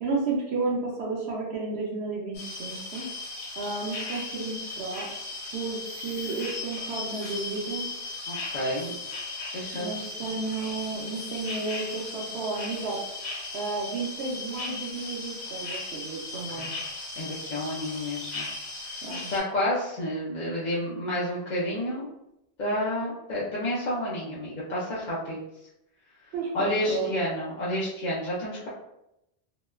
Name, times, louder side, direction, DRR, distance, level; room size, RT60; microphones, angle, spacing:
voice 1, 0.0-3.0 3.6-5.1 5.5-7.9 9.7-13.0 13.5-16.7 19.0-19.3 26.3-27.1, right 3 dB, 80° right, -3 dB, 0.8 m, -32 dB
sound 1, 2.3-19.4, left 3 dB, 80° left, 1.1 m, -37 dB
voice 2, 8.3-8.9 9.5-9.9 16.5-16.7 17.2-18.5 18.8-22.1 22.6-25.4 26.5-28.7, left 1 dB, 50° left, -8 dB, 0.6 m, -30 dB
2.8 x 2.2 x 2.2 m, 0.84 s
omnidirectional pair, 1.1 m